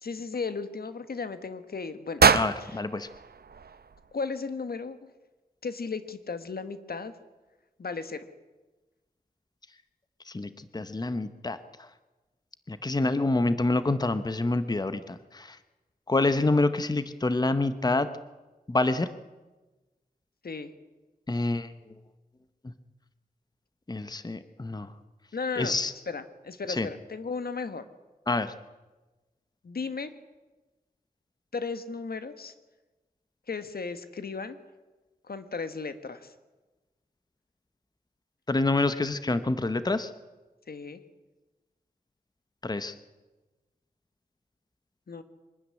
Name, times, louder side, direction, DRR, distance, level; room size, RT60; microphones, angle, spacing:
voice 1, 0.0-2.2 2.6-2.8 4.1-5.0 5.6-7.1 7.8-8.3 20.4-20.7 25.3-25.7 26.1-27.8 29.6-30.1 31.5-32.5 33.5-34.6 35.3-36.3 40.7-41.0 45.1-45.2, left 4 dB, 80° left, 11 dB, 1.4 m, -35 dB
sound 1, 2.2-4.3, right 6 dB, 85° right, 0.8 m, -25 dB
voice 2, 2.3-3.1 10.3-11.9 12.7-15.6 16.1-18.1 18.7-19.1 21.3-21.7 22.6-22.7 23.9-24.9 25.6-25.9 26.7-26.9 28.3-28.5 38.5-40.1 42.6-42.9, left 2 dB, 25° left, 12 dB, 0.9 m, -27 dB
24.0 x 12.5 x 9.7 m, 1.2 s
wide cardioid pair, 95°, 16 cm